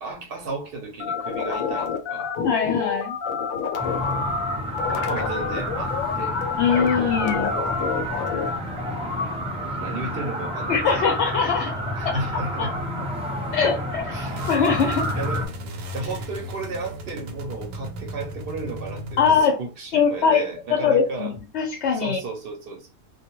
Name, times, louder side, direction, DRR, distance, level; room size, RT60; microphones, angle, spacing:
voice 1, 0.0-2.3 4.9-6.4 9.7-10.8 11.9-12.7 14.1-14.4 15.1-15.4 15.9-21.3 21.9-22.9, right 3 dB, 55° right, 0.7 m, -34 dB
sound 1, 1.0-8.6, left 6 dB, 90° left, 1.0 m, -28 dB
voice 2, 2.4-3.2 6.6-7.6 10.7-11.8 12.0-12.7 13.5-14.1 14.5-15.0 19.2-19.6 19.9-20.4 20.7-22.2, left 6 dB, 65° left, 0.8 m, -22 dB
sound 2, 3.8-15.5, equal, 10° right, 0.3 m, -29 dB
sound 3, 14.3-19.4, equal, 90° right, 1.0 m, -36 dB
2.2 x 2.2 x 2.9 m
omnidirectional pair, 1.4 m